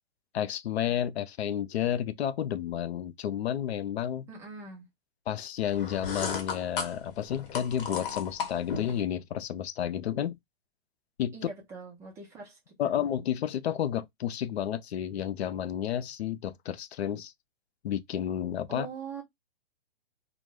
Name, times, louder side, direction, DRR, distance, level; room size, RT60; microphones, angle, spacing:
voice 1, 0.3-4.3 5.3-10.4 11.2-11.3 12.8-17.3 17.8-18.9, left 10 dB, 85° left, 0.5 m, -31 dB
voice 2, 4.3-4.9 11.3-13.0 18.7-19.2, right 5 dB, 10° right, 0.4 m, -43 dB
sound 1, 5.7-9.0, left 6 dB, 60° left, 0.9 m, -35 dB
2.2 x 2.1 x 3.0 m
hypercardioid pair, 145°, 31 cm